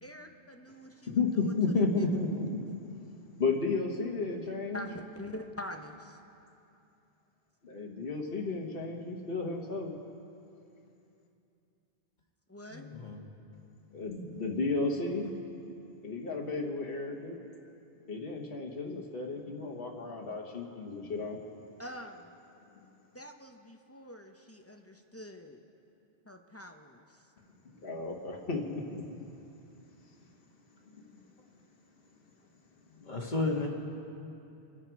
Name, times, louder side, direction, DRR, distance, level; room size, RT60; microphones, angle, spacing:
voice 1, 0.0-2.1 4.7-6.2 12.5-12.9 21.8-22.4 23.1-25.6 26.3-27.2, left 1 dB, 15° left, 4 dB, 0.8 m, -45 dB
voice 2, 1.1-2.6 3.4-4.9 7.6-9.9 13.9-15.4 16.0-17.4 18.1-21.4 27.8-29.0 31.0-31.2 32.9-33.1, left 3 dB, 65° left, -1 dB, 1.6 m, -33 dB
voice 3, 12.7-13.2 33.1-33.7, left 3 dB, 45° left, 0 dB, 2.0 m, -32 dB
27.0 x 10.0 x 4.7 m, 2.7 s
omnidirectional pair, 1.1 m